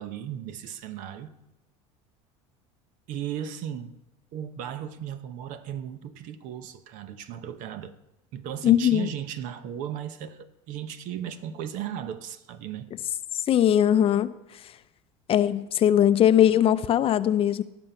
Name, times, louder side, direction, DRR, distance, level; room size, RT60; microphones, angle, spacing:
voice 1, 0.0-1.4 3.1-3.9 4.3-7.9 8.3-12.9, right 9 dB, 60° right, 0.9 m, -36 dB
voice 2, 8.6-9.1 13.5-14.3 15.3-17.6, left 10 dB, 40° left, 0.6 m, -20 dB
18.0 x 6.2 x 5.6 m
supercardioid pair, 95°, 15 cm